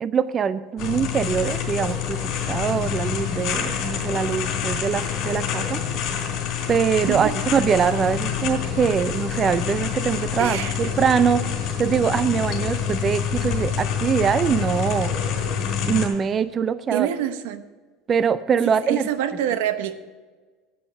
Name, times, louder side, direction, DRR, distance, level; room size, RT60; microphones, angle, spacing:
voice 1, 0.0-5.8 6.7-11.4 11.8-15.1 15.9-17.1 18.1-19.0, right 7 dB, 30° right, 14 dB, 0.4 m, -23 dB
sound 1, 0.8-16.1, left 8 dB, 45° left, 3.6 m, -27 dB
voice 2, 10.4-10.9 16.9-17.6 18.6-19.9, right 11 dB, 80° right, 10 dB, 0.9 m, -26 dB
10.5 x 8.6 x 5.7 m, 1.4 s
supercardioid pair, 125°, 0 cm